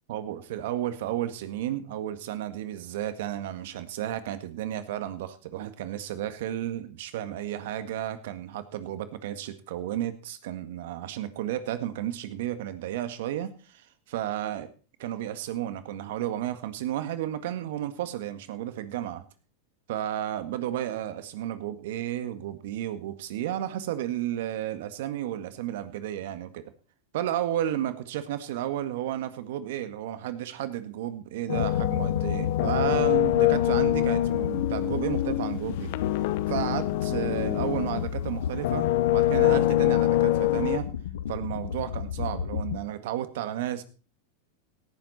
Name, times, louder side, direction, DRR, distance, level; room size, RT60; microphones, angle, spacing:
voice 1, 0.1-14.7 15.0-19.2 19.9-26.6 27.1-36.0 36.5-40.9 41.3-43.8, right 12 dB, 70° right, 11 dB, 1.8 m, -32 dB
sound 1, 31.5-42.8, left 8 dB, 90° left, 0.9 m, -33 dB
sound 2, 31.5-38.2 38.6-40.8, left 15 dB, 60° left, 0.9 m, -25 dB
17.5 x 10.0 x 4.3 m, 0.37 s
supercardioid pair, 130°, 0 cm